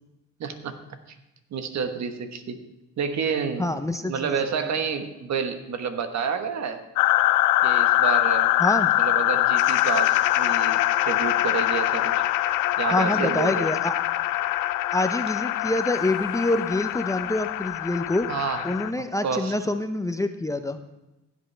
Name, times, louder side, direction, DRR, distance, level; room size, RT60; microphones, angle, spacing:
voice 1, 0.4-0.8 1.5-2.6 3.0-3.7 4.1-6.8 7.6-8.5 9.0-12.1 12.8-13.7 18.3-18.7 19.2-19.5, right 6 dB, 65° right, 7 dB, 1.3 m, -29 dB
voice 2, 3.6-4.3 8.6-8.9 12.9-13.9 14.9-18.3 18.6-20.8, left 2 dB, 10° left, 8 dB, 0.6 m, -26 dB
sound 1, 7.0-18.9, left 15 dB, 90° left, 0.5 m, -23 dB
16.0 x 8.2 x 3.3 m, 0.96 s
cardioid pair, 90°, 30 cm